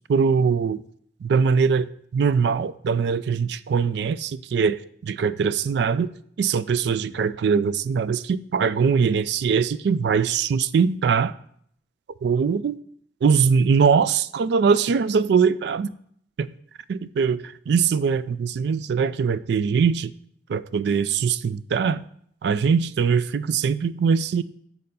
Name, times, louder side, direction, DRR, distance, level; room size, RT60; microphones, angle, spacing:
voice 1, 0.1-0.8 1.2-6.1 6.4-11.3 12.2-12.8 13.2-15.9 16.4-16.5 16.9-20.1 20.5-22.1 22.4-24.4, right 6 dB, 60° right, 0.3 m, -22 dB
6.7 x 4.2 x 5.3 m
head